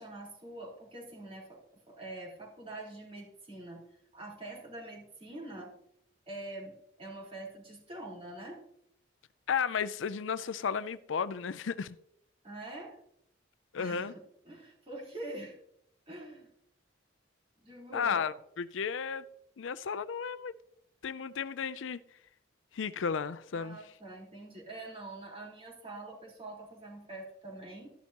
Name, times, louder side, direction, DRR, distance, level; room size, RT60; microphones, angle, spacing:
voice 1, 0.0-3.8 4.1-5.7 6.3-8.6 12.4-13.0 13.8-14.1 14.4-15.6 16.1-16.5 17.6-18.3 23.5-27.9, right 2 dB, 30° right, 4.2 m, -45 dB
voice 2, 9.5-12.0 13.7-14.1 17.9-19.3 19.6-20.5 21.0-22.0 22.7-23.8, left 6 dB, 70° left, 0.5 m, -33 dB
13.0 x 11.5 x 2.9 m
head